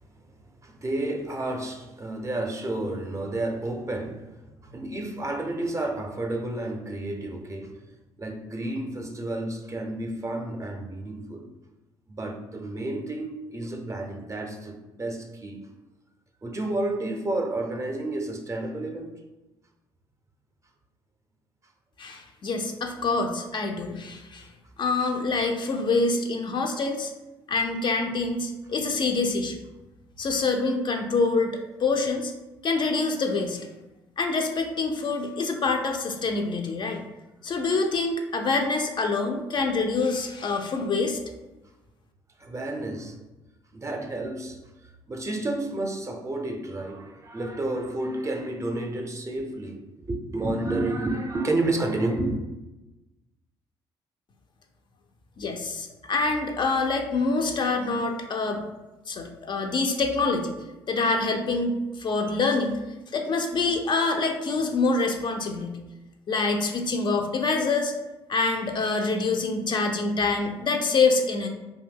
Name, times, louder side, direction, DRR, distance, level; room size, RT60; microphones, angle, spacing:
voice 1, 0.6-7.8 8.2-11.5 12.1-15.6 16.4-19.1 42.4-43.2 43.7-52.4, right 2 dB, 25° right, 3 dB, 0.5 m, -31 dB
voice 2, 22.0-24.5 24.8-27.1 27.5-29.6 30.2-32.3 32.6-33.7 34.2-37.1 37.4-41.2 55.4-58.6 59.1-60.5 60.9-62.8 63.1-65.8 66.3-67.9 68.3-71.5, left 3 dB, 40° left, 4 dB, 0.4 m, -26 dB
2.6 x 2.1 x 3.4 m, 1.1 s
hypercardioid pair, 50°, 12 cm